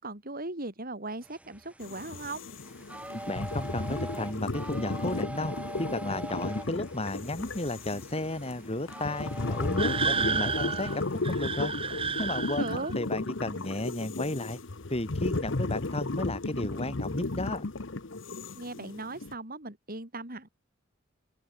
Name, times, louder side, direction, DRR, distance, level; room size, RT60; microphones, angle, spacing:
voice 1, 0.0-2.4 12.4-12.9 18.6-20.5, right 2 dB, 50° right, 5.6 m, -38 dB
sound 1, 1.2-11.3, right 1 dB, 5° right, 1.5 m, -44 dB
sound 2, 1.8-19.3, left 2 dB, 70° left, 1.2 m, -34 dB
voice 2, 3.1-11.7 12.2-14.6 14.9-17.6, left 1 dB, 30° left, 3.0 m, -33 dB
sound 3, 9.8-12.9, right 5 dB, 30° right, 1.1 m, -31 dB
open air
head